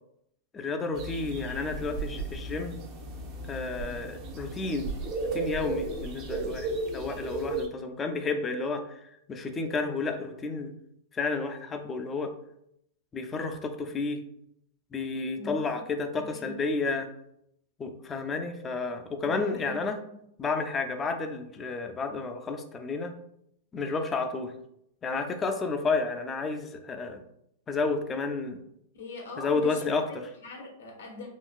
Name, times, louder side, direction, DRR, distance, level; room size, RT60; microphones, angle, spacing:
voice 1, 0.5-2.8 3.5-4.9 5.3-8.8 9.3-10.7 11.1-12.3 13.1-14.2 14.9-17.1 17.8-20.0 20.4-23.1 23.7-24.5 25.0-27.2 27.7-28.6 29.4-30.0, left 3 dB, 20° left, 5 dB, 0.4 m, -31 dB
sound 1, 0.9-7.7, right 2 dB, 40° right, 0.6 m, -35 dB
voice 2, 15.4-15.9 16.1-16.5 19.2-19.8 20.0-20.1 28.9-31.3, left 2 dB, 85° left, 0 dB, 1.1 m, -42 dB
3.8 x 2.3 x 2.4 m, 0.74 s
hypercardioid pair, 125°, 0 cm